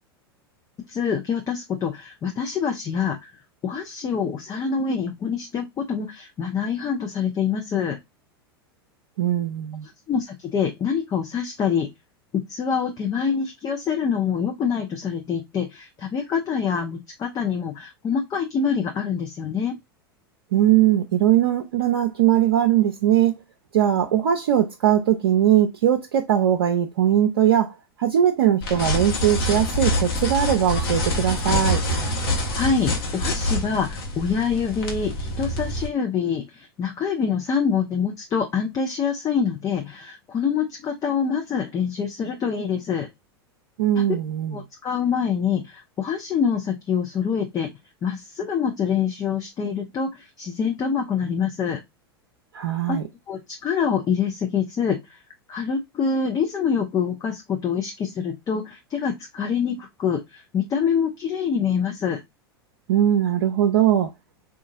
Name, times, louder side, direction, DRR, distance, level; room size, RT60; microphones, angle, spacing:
voice 1, 0.9-3.3 3.6-8.0 10.1-11.9 12.3-19.7 32.5-43.1 44.0-44.1 44.5-47.7 48.0-51.8 52.9-53.0 53.3-55.2 55.5-62.2, left 6 dB, 30° left, 0.7 m, -25 dB
voice 2, 9.2-9.9 20.5-23.4 23.7-27.7 28.0-31.8 43.8-44.6 52.5-53.0 62.9-64.1, right 10 dB, 70° right, 0.5 m, -20 dB
sound 1, 28.6-35.9, left 1 dB, 65° left, 1.1 m, -26 dB
3.8 x 2.5 x 2.6 m
hypercardioid pair, 90°, 13 cm